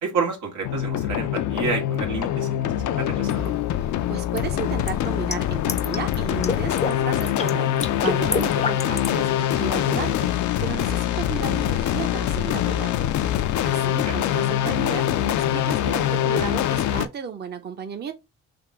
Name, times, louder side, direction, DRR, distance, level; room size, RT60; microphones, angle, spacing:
voice 1, 0.0-2.6 2.8-3.6 14.1-14.2, right 5 dB, 85° right, 1.7 m, -29 dB
sound 1, 0.6-17.1, left 11 dB, 75° left, 0.5 m, -24 dB
sound 2, 3.3-3.5 4.4-6.2 6.4-6.9 7.2-7.5 7.8-9.2, left 4 dB, 20° left, 0.5 m, -28 dB
voice 2, 3.8-13.1 13.6-18.1, right 7 dB, 35° right, 0.7 m, -34 dB
3.6 x 2.8 x 4.6 m
cardioid pair, 90°, 30 cm